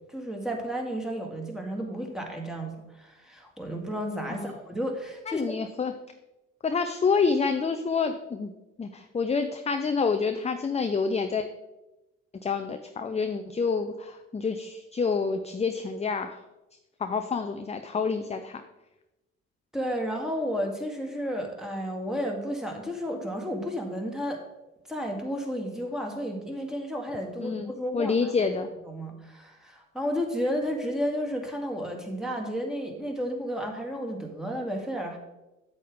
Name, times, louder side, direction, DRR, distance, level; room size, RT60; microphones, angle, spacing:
voice 1, 0.1-5.6 19.7-24.4 24.9-28.3 28.9-35.2, equal, ahead, 1 dB, 2.1 m, -32 dB
voice 2, 5.3-5.9 6.6-8.5 8.8-11.5 12.4-16.4 17.0-18.6 27.4-28.7, left 5 dB, 20° left, 7 dB, 0.6 m, -28 dB
8.4 x 7.7 x 3.6 m, 1.0 s
hypercardioid pair, 55°, 34 cm